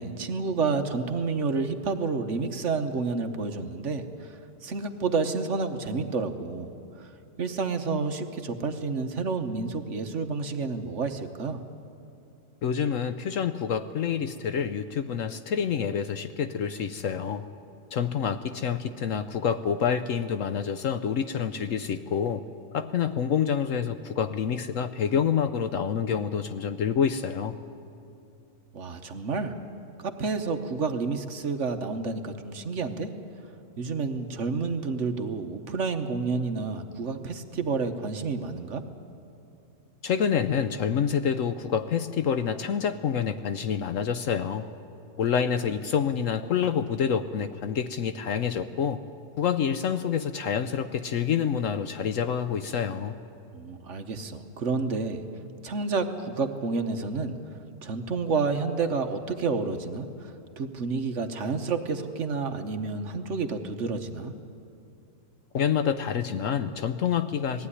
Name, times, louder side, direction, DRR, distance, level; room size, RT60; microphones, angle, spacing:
voice 1, 0.0-7.1 7.4-11.6 28.7-29.5 30.0-33.1 33.8-38.8 53.5-55.2 55.6-57.4 57.8-64.3, right 4 dB, 55° right, 7 dB, 1.2 m, -30 dB
voice 2, 12.6-17.4 17.9-22.4 22.7-27.5 40.0-44.7 45.2-49.0 49.4-53.2 65.5-67.7, left 7 dB, 65° left, 10 dB, 0.9 m, -27 dB
19.5 x 15.0 x 9.8 m, 2.6 s
omnidirectional pair, 1.7 m